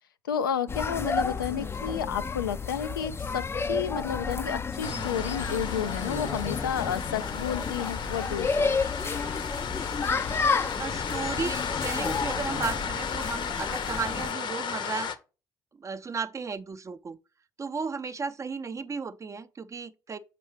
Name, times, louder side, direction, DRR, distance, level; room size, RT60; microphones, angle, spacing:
voice 1, 0.2-8.8, left 8 dB, 90° left, 0.4 m, -31 dB
sound 1, 0.7-14.3, left 4 dB, 20° left, 0.4 m, -31 dB
sound 2, 4.8-15.2, left 7 dB, 45° left, 0.7 m, -34 dB
sound 3, 4.8-12.9, right 4 dB, 65° right, 0.8 m, -45 dB
voice 2, 10.8-15.1 15.8-17.2 17.6-20.2, right 5 dB, 30° right, 0.6 m, -34 dB
6.6 x 4.6 x 3.2 m
hypercardioid pair, 60°, 11 cm